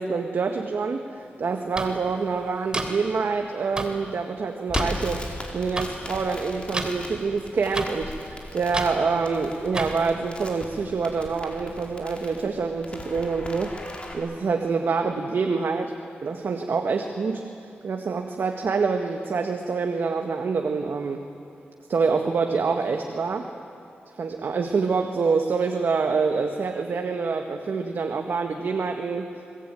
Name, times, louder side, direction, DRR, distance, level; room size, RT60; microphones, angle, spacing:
voice 1, 0.0-15.9 16.2-17.4 17.8-21.3 21.9-23.5 24.2-29.5, right 4 dB, 70° right, 4 dB, 1.7 m, -26 dB
sound 1, 1.8-1.9 2.7-2.9 3.8-3.9 4.7-4.8 5.8-5.9 6.7-6.9 7.7-7.9 8.7-8.9 9.7-9.9, right 2 dB, 20° right, 3.1 m, -28 dB
Crackle, 4.7-14.1, left 1 dB, 30° left, 4.8 m, -38 dB
28.0 x 21.5 x 9.2 m, 2.6 s
wide cardioid pair, 90°, 4 cm